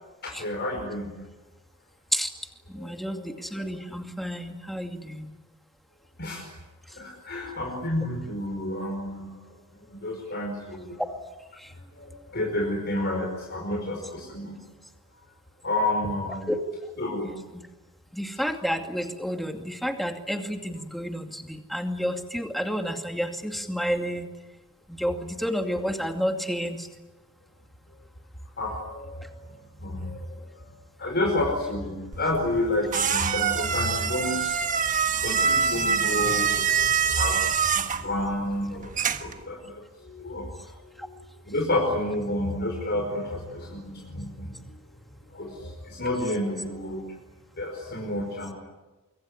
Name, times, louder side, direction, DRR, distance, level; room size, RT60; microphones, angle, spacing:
voice 1, 0.2-1.2 2.8-2.9 3.1-3.3 3.7-3.8 6.2-6.5 7.0-9.3 9.9-11.0 12.0-14.6 15.6-16.5 17.0-17.3 28.6-29.3 29.8-30.2 31.0-34.6 35.1-38.9 39.2-40.5 40.9-41.1 41.5-44.6 45.3-47.0 47.6-48.5, left 1 dB, 45° left, 0 dB, 5.2 m, -30 dB
voice 2, 2.7-5.3 16.5-16.6 18.2-21.3 21.7-24.3 25.0-26.8, equal, ahead, 4 dB, 2.4 m, -30 dB
sound 1, 32.1-39.4, right 6 dB, 35° right, 1.5 m, -25 dB
25.0 x 24.0 x 9.8 m, 1.2 s
head